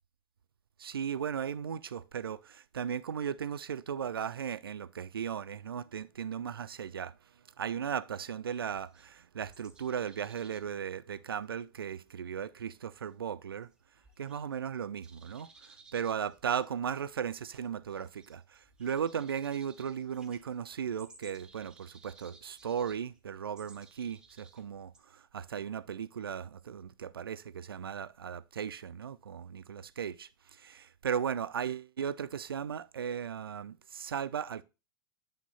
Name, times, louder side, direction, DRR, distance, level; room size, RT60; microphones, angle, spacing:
voice 1, 0.8-7.1 7.6-13.7 14.2-34.6, right 8 dB, 75° right, 0.4 m, -36 dB
sound 1, 8.5-14.7 15.0-25.0, right 3 dB, 5° right, 0.8 m, -60 dB
8.5 x 3.6 x 4.0 m
figure-of-eight pair, 95°, 12 cm